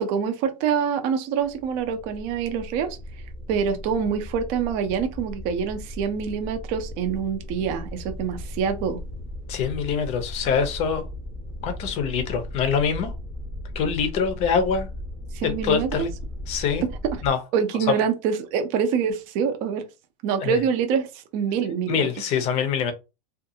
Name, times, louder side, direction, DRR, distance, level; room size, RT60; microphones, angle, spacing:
voice 1, 0.0-3.0 3.5-9.0 15.3-16.1 17.1-17.2 17.5-19.8 20.2-22.1, right 7 dB, 40° right, 0.5 m, -25 dB
sound 1, 1.4-17.3, left 1 dB, 10° right, 0.8 m, -37 dB
voice 2, 9.5-11.0 11.6-13.1 13.7-14.9 15.4-16.1 16.5-16.8 17.2-17.4 17.9-18.0 20.4-20.6 21.9-22.9, left 6 dB, 35° left, 0.6 m, -24 dB
2.5 x 2.3 x 2.7 m
supercardioid pair, 155°, 20 cm